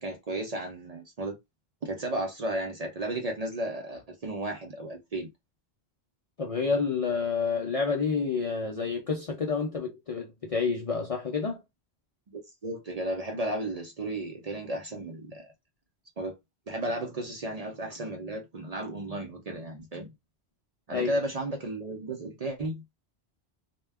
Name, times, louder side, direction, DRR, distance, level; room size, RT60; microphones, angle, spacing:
voice 1, 0.0-1.4 1.8-5.3 12.3-15.5 16.2-16.4 16.7-20.1 20.9-22.8, right 1 dB, 50° right, 0.5 m, -34 dB
voice 2, 6.4-11.6 20.9-21.2, left 5 dB, 50° left, 0.4 m, -29 dB
2.2 x 2.1 x 3.3 m
omnidirectional pair, 1.1 m